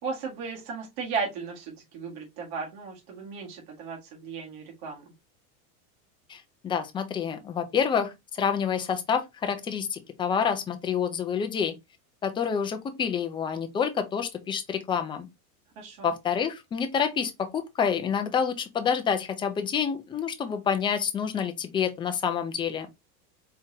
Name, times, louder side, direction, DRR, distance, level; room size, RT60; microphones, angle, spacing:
voice 1, 0.0-5.0 15.8-16.1, right 5 dB, 70° right, 1.9 m, -35 dB
voice 2, 6.3-11.7 12.2-15.3 16.0-22.9, left 7 dB, 10° left, 0.4 m, -28 dB
4.4 x 3.6 x 2.8 m
supercardioid pair, 140°, 45 cm